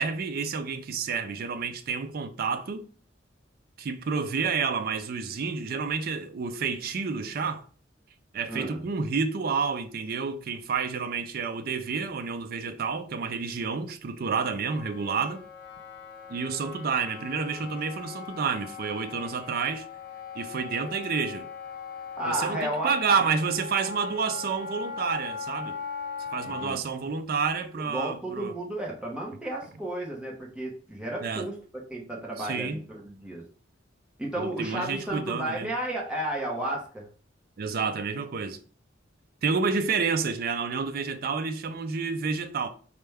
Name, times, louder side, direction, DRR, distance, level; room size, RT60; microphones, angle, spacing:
voice 1, 0.0-2.9 3.8-7.6 8.3-15.4 16.3-19.9 20.3-21.5 22.3-25.7 26.3-28.5 31.2-31.5 32.4-32.8 34.4-35.7 37.6-38.6 39.4-42.7, right 5 dB, 50° right, 0.4 m, -29 dB
voice 2, 8.5-8.8 22.2-23.2 26.4-26.8 27.7-33.4 34.2-37.1, right 1 dB, 5° right, 0.8 m, -33 dB
Wind instrument woodwind instrument, 14.7-26.7, left 5 dB, 60° left, 0.9 m, -40 dB
4.2 x 2.2 x 3.3 m
head